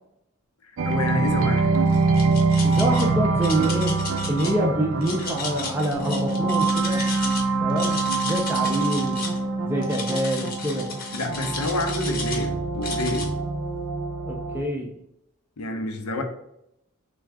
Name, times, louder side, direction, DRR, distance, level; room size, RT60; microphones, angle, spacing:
voice 1, 0.8-1.9 11.1-13.4 15.6-16.2, left 2 dB, 90° left, 0.6 m, -29 dB
sound 1, 0.8-14.6, right 3 dB, 70° right, 0.5 m, -24 dB
sound 2, 1.9-3.0 3.4-4.5 5.0-7.4 7.7-9.4 9.8-12.5 12.8-13.3, left 4 dB, 40° left, 0.7 m, -34 dB
voice 2, 2.6-4.0 4.3-7.0 7.6-9.2 9.6-11.0 14.2-15.0, right 1 dB, 10° right, 0.3 m, -26 dB
3.5 x 2.3 x 3.3 m
head